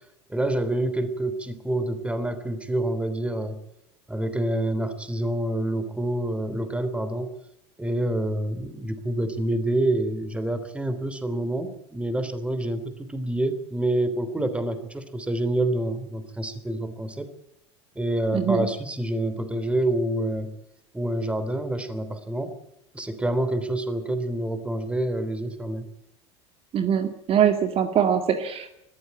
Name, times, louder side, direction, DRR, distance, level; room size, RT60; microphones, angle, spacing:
voice 1, 0.3-3.6 4.1-7.3 7.8-17.3 18.0-20.5 20.9-22.5 22.9-25.9, right 1 dB, 10° right, 12 dB, 3.4 m, -27 dB
voice 2, 18.3-18.7 26.7-28.7, right 8 dB, 40° right, 8 dB, 2.0 m, -22 dB
20.5 x 14.5 x 9.4 m, 0.81 s
hypercardioid pair, 80°, 15 cm